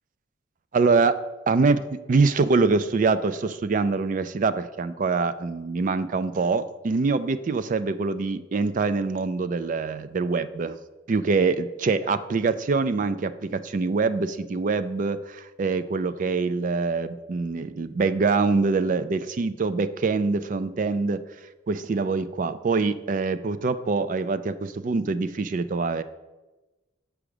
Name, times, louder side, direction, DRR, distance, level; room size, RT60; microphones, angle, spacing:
voice 1, 0.7-1.1 1.5-1.8 2.1-10.8 11.1-21.2 21.7-26.0, right 4 dB, 40° right, 13 dB, 0.3 m, -24 dB
6.0 x 5.0 x 6.6 m, 1.1 s
head